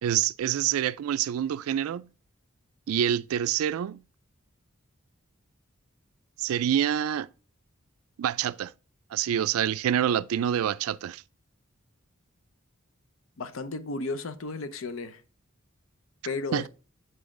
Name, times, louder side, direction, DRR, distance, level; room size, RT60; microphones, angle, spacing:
voice 1, 0.0-2.1 2.9-4.0 6.4-7.3 8.2-8.7 9.1-11.2 16.5-16.7, right 10 dB, 85° right, 0.3 m, -26 dB
voice 2, 13.4-15.2 16.2-16.7, left 3 dB, 70° left, 0.6 m, -33 dB
7.0 x 4.2 x 3.7 m
head